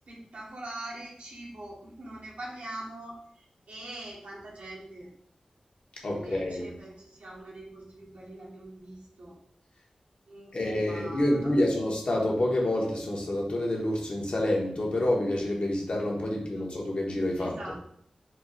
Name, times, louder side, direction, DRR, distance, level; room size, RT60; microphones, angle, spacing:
voice 1, 0.0-5.1 6.0-9.4 10.3-11.6 16.5-16.6 17.4-17.8, right 1 dB, 90° right, -5 dB, 1.4 m, -43 dB
voice 2, 6.0-6.7 10.5-17.6, left 1 dB, 60° left, -2 dB, 1.1 m, -28 dB
4.3 x 2.1 x 4.0 m, 0.65 s
wide cardioid pair, 60°, 2 cm